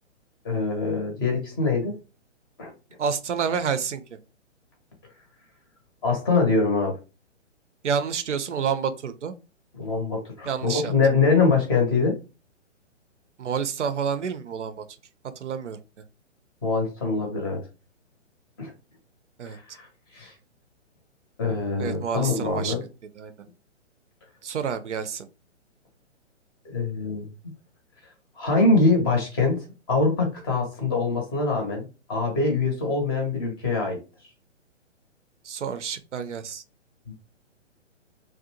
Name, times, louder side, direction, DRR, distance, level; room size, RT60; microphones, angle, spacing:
voice 1, 0.4-1.9 2.6-2.7 6.0-7.0 9.7-12.2 16.6-17.6 18.6-18.7 19.5-19.9 20.1-20.3 21.4-22.8 26.6-27.3 28.4-34.0 37.1-37.2, left 3 dB, 20° left, 0.6 m, -24 dB
voice 2, 3.0-4.0 7.8-9.3 10.5-10.9 13.4-14.8 15.4-15.8 19.4-19.6 21.8-22.7 23.2-23.3 24.4-25.3 35.4-36.6, right 7 dB, 70° right, 0.5 m, -28 dB
2.6 x 2.1 x 2.7 m
figure-of-eight pair, 130°, 37 cm